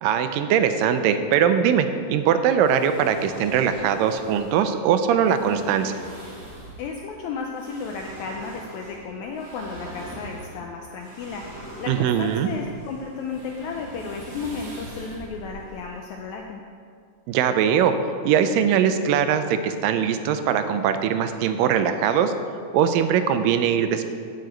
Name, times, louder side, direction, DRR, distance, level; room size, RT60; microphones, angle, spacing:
voice 1, 0.0-5.9 11.9-12.5 17.3-17.9 18.3-22.3 22.7-24.0, right 8 dB, 85° right, 9 dB, 2.2 m, -21 dB
sound 1, 2.6-16.5, right 1 dB, 65° right, 3.7 m, -42 dB
voice 2, 6.8-16.6, left 5 dB, 85° left, 2 dB, 1.7 m, -34 dB
7.7 x 5.8 x 7.8 m, 2.2 s
omnidirectional pair, 3.9 m